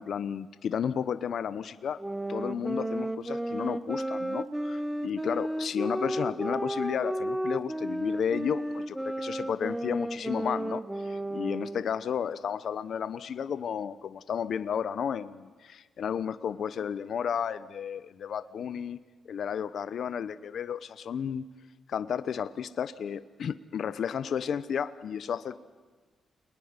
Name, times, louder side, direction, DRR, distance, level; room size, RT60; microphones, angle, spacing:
voice 1, 0.0-2.0 2.3-19.0 19.3-21.4 21.9-25.6, left 7 dB, 70° left, 13 dB, 1.0 m, -32 dB
sound 1, 2.0-12.0, right 1 dB, 10° right, 1.4 m, -33 dB
29.5 x 21.0 x 9.8 m, 1.4 s
cardioid pair, 70°, 0 cm